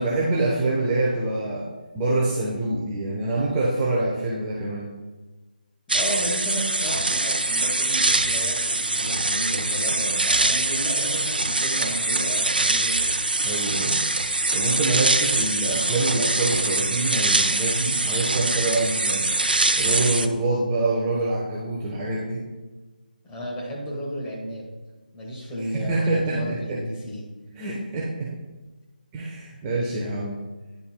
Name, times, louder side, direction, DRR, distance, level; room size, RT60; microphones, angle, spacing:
voice 1, 0.0-1.7 1.9-4.9 11.0-11.1 13.4-14.0 14.5-19.3 19.8-22.4 25.7-26.8 27.5-28.3 29.1-30.4, right 2 dB, 15° right, -6 dB, 0.9 m, -25 dB
voice 2, 5.9-13.1 23.2-24.7 25.1-27.3, equal, 15° left, -5 dB, 1.7 m, -33 dB
sound 1, 5.9-20.3, right 2 dB, 75° right, 0.6 m, -23 dB
9.9 x 8.1 x 2.2 m, 1.3 s
figure-of-eight pair, 155°, 5 cm